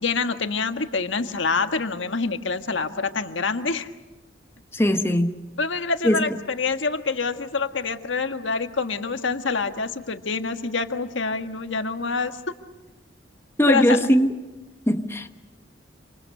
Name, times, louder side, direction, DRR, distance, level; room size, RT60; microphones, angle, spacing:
voice 1, 0.0-3.9 5.6-12.3 13.7-14.0, left 4 dB, 75° left, 7 dB, 1.6 m, -26 dB
voice 2, 4.7-5.4 6.0-6.3 13.6-14.3 14.9-15.3, equal, 15° left, 6 dB, 1.2 m, -20 dB
27.5 x 27.0 x 6.7 m, 1.1 s
head